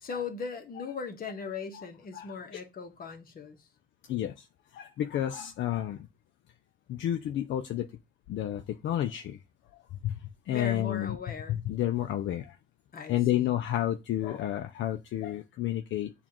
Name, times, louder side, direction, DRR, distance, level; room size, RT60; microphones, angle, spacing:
voice 1, 0.0-3.6 10.5-11.6 12.9-13.6, left 5 dB, 50° left, 1.1 m, -38 dB
voice 2, 4.1-4.5 4.7-6.1 6.9-7.9 8.3-9.4 10.0-10.2 10.5-11.2 11.5-12.6 13.1-16.1, left 12 dB, 70° left, 0.5 m, -30 dB
7.0 x 2.5 x 2.9 m
cardioid pair, 90°, 20 cm